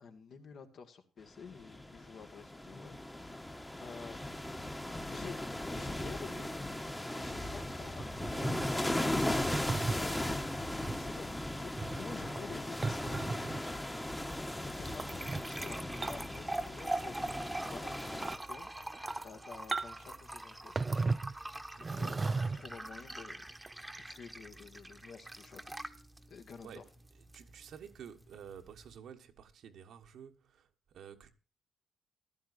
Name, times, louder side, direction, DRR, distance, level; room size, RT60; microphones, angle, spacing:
voice 1, 0.0-3.0 3.8-4.2 5.1-6.5 7.1-8.9 9.8-10.1 10.9-13.8 14.6-17.2 17.7-18.7 19.2-20.7 21.7-23.4 24.0-25.8 26.3-26.8, left 5 dB, 60° left, 1.9 m, -50 dB
sound 1, 1.4-18.4, left 1 dB, 10° left, 1.2 m, -37 dB
sound 2, 8.0-8.7 9.5-10.0 10.8-11.0 11.6-13.7 14.9-15.4 16.0-16.4 16.7-17.1 17.5-17.6 18.1-18.4 18.9-19.3 19.7-20.1 20.8-21.4 21.8-22.8 23.7-23.8, right 3 dB, 30° right, 0.4 m, -36 dB
sound 3, 14.3-29.0, right 1 dB, 10° right, 1.1 m, -44 dB
voice 2, 21.8-22.1 26.6-26.9 27.3-31.3, right 8 dB, 70° right, 1.3 m, -51 dB
14.5 x 12.0 x 2.6 m
cardioid pair, 90°, 0 cm